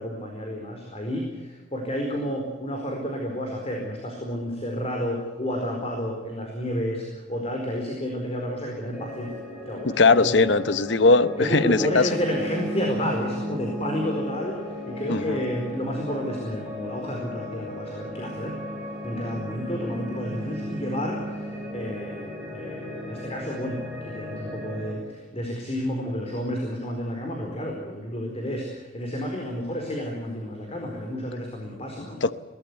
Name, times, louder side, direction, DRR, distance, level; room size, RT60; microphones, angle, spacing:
voice 1, 0.0-10.4 11.4-18.5 19.0-32.2, equal, 30° left, 1 dB, 4.5 m, -31 dB
sound 1, 8.9-24.9, left 1 dB, 5° right, 6.6 m, -35 dB
voice 2, 9.8-12.1 15.1-15.4 32.2-32.3, left 3 dB, 60° left, 14 dB, 0.9 m, -20 dB
22.5 x 18.5 x 8.2 m, 1.3 s
head